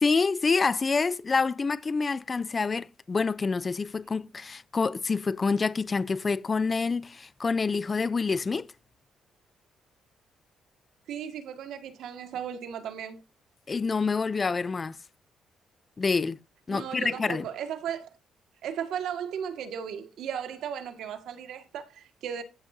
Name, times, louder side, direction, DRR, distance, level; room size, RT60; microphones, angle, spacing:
voice 1, 0.0-8.7 13.7-14.9 16.0-16.4 16.7-17.5, left 4 dB, 30° left, 0.6 m, -27 dB
voice 2, 11.1-13.2 16.7-18.1 18.6-22.4, right 8 dB, 80° right, 2.0 m, -36 dB
14.0 x 6.2 x 2.8 m
cardioid pair, 90°, 0 cm